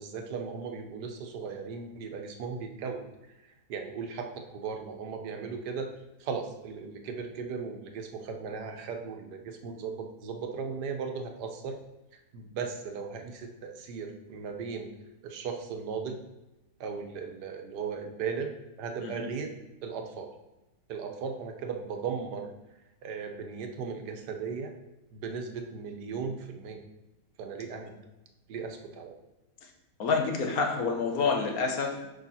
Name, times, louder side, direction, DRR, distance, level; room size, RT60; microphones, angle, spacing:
voice 1, 0.0-5.9 6.2-11.7 12.1-14.9 15.2-16.2 16.8-19.5 19.8-20.3 20.9-22.5 23.0-24.7 25.1-26.8 27.4-27.9 28.5-29.1, right 5 dB, 85° right, 4 dB, 1.4 m, -37 dB
voice 2, 30.0-32.1, left 4 dB, 65° left, 2 dB, 1.4 m, -28 dB
6.5 x 5.5 x 4.2 m, 0.99 s
omnidirectional pair, 1.7 m